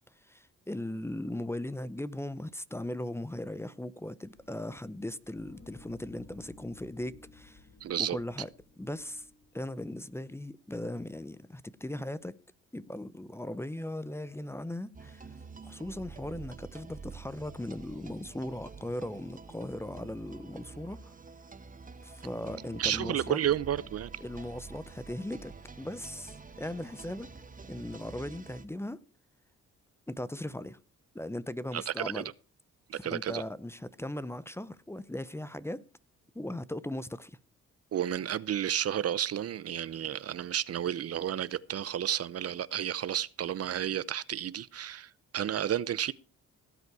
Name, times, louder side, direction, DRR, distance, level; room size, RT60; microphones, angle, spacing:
voice 1, 0.3-7.6 8.0-8.5 8.8-9.3 9.5-12.3 12.7-15.3 15.6-21.1 22.0-23.4 24.2-27.3 27.7-29.0 30.1-30.8 31.1-32.3 32.9-35.8 36.3-37.4, left 1 dB, 10° left, 0.7 m, -38 dB
sound 1, 4.3-10.3, left 3 dB, 40° left, 4.9 m, -56 dB
voice 2, 7.8-8.2 22.8-24.1 31.7-32.2 32.9-33.4 37.9-46.1, right 10 dB, 55° right, 0.7 m, -31 dB
sound 2, 14.9-28.7, right 4 dB, 25° right, 1.6 m, -48 dB
17.5 x 8.2 x 4.8 m
cardioid pair, 80°, 30 cm